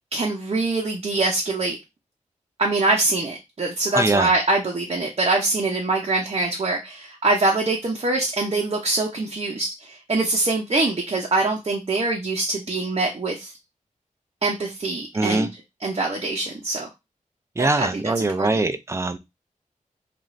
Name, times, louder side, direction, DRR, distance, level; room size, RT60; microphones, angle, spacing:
voice 1, 0.1-1.8 2.6-13.5 14.4-15.5 15.8-16.9 17.6-18.6, right 2 dB, 45° right, 0.7 m, -24 dB
voice 2, 3.9-4.3 15.1-15.5 17.6-19.2, right 2 dB, 20° right, 0.4 m, -22 dB
2.5 x 2.4 x 3.1 m
wide cardioid pair, 70°, 13 cm